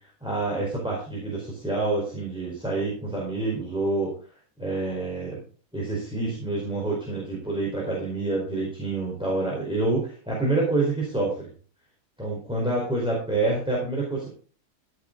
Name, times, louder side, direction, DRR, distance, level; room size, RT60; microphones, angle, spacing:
voice 1, 0.2-4.1 4.6-5.4 5.7-11.5 12.2-14.3, right 2 dB, 5° right, -4 dB, 4.5 m, -27 dB
15.5 x 8.2 x 4.0 m, 0.39 s
omnidirectional pair, 1.5 m